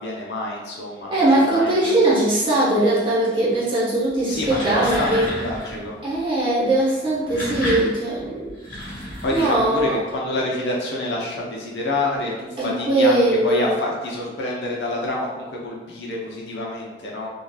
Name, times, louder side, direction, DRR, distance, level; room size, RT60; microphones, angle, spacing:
voice 1, 0.0-2.2 4.3-6.1 9.0-17.3, left 1 dB, 80° left, -3 dB, 0.6 m, -27 dB
voice 2, 1.1-5.3 6.0-8.5 9.3-10.0 12.6-13.8, right 1 dB, 30° right, -9 dB, 0.9 m, -20 dB
sound 1, 4.2-5.9 7.0-10.1, equal, 50° left, 1.2 m, -31 dB
2.8 x 2.3 x 2.2 m, 1.2 s
head